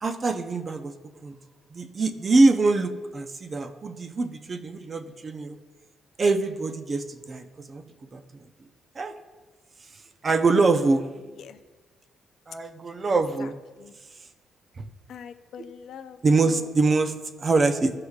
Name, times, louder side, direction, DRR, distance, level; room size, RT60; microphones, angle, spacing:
voice 1, 0.0-0.9 1.2-1.4 1.7-5.6 6.2-7.8 8.1-8.2 8.9-9.2 10.2-11.1 12.5-13.5 14.8-14.9 16.2-17.9, right 3 dB, 35° right, 8 dB, 0.6 m, -24 dB
voice 2, 13.1-13.5 13.8-13.9 15.1-16.7, left 7 dB, 70° left, 8 dB, 0.5 m, -43 dB
13.5 x 4.8 x 2.4 m, 1.3 s
cardioid pair, 90°, 0 cm